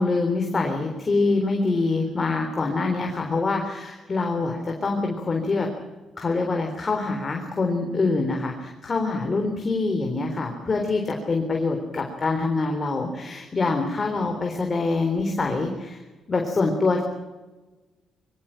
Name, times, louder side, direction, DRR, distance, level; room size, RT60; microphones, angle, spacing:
voice 1, 0.0-5.7 6.2-16.0 16.3-17.0, left 3 dB, 35° left, 2 dB, 3.7 m, -25 dB
23.0 x 16.5 x 8.9 m, 1.2 s
cardioid pair, 90°, 0 cm